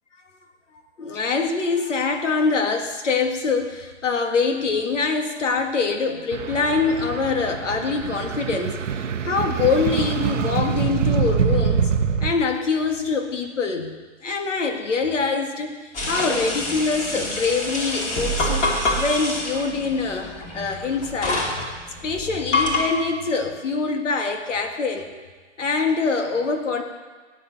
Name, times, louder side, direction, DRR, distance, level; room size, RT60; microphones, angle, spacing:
voice 1, 1.0-11.9 12.2-18.7 19.0-21.5 22.0-25.1 25.6-26.8, left 4 dB, 80° left, 5 dB, 1.9 m, -24 dB
sound 1, 6.3-12.3, right 7 dB, 85° right, 0.9 m, -24 dB
sound 2, 15.9-22.8, left 1 dB, 20° left, 2.1 m, -26 dB
16.5 x 8.7 x 4.1 m, 1.4 s
hypercardioid pair, 135°, 36 cm